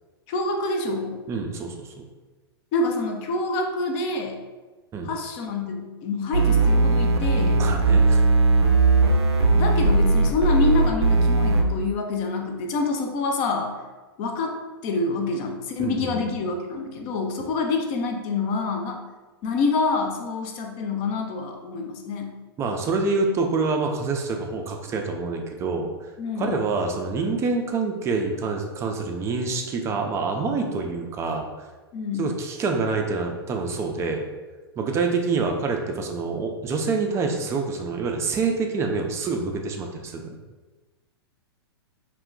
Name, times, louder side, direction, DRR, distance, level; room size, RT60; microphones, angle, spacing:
voice 1, 0.3-1.2 2.7-4.4 5.0-7.6 9.5-13.8 14.2-14.6 14.8-19.0 19.4-22.3 26.2-26.6 31.9-32.3, left 3 dB, 40° left, 3 dB, 0.4 m, -27 dB
voice 2, 1.3-1.9 4.9-5.1 7.5-8.2 15.8-16.2 17.4-17.5 22.6-25.9 26.4-31.7 32.2-34.2 34.8-40.3, right 4 dB, 20° right, 3 dB, 0.4 m, -26 dB
sound 1, 6.3-11.6, right 3 dB, 85° right, 0.4 m, -18 dB
2.2 x 2.2 x 3.7 m, 1.2 s
hypercardioid pair, 110°, 13 cm